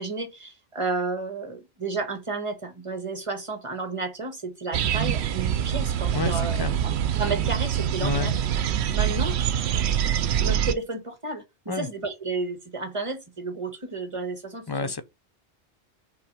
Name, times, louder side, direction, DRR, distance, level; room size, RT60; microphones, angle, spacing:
voice 1, 0.0-6.9 7.2-8.3 8.9-9.4 10.3-14.9, right 3 dB, 30° right, 1.5 m, -32 dB
sound 1, 4.7-10.7, right 9 dB, 85° right, 0.9 m, -25 dB
voice 2, 6.1-6.8 8.0-8.3 11.7-11.9 14.7-15.0, left 5 dB, 25° left, 0.6 m, -29 dB
5.8 x 4.2 x 4.7 m
omnidirectional pair, 1.1 m